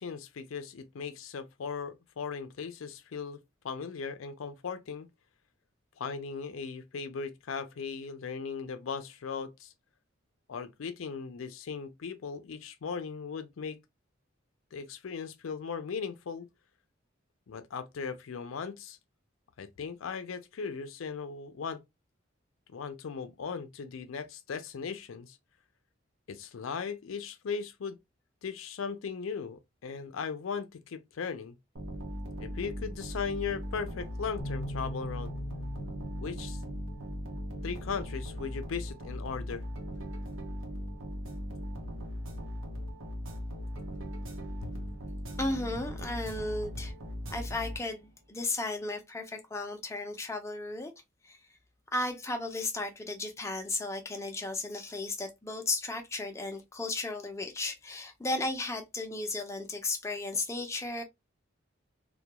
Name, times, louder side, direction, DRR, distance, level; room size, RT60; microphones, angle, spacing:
voice 1, 0.0-3.4 3.6-5.1 6.0-9.7 10.5-13.8 14.7-16.5 17.5-19.0 19.6-21.8 22.7-25.4 26.3-28.0 28.4-31.6 32.4-35.3 36.2-36.6 37.6-39.6 44.6-44.7, left 5 dB, 90° left, 0.4 m, -38 dB
sound 1, 31.7-48.2, equal, 85° right, 0.8 m, -39 dB
Bass guitar, 34.4-40.6, equal, 45° left, 0.7 m, -44 dB
voice 2, 45.4-46.9 47.3-50.9 51.2-51.4 51.9-61.0, left 2 dB, 15° left, 0.5 m, -34 dB
2.2 x 2.2 x 2.8 m
head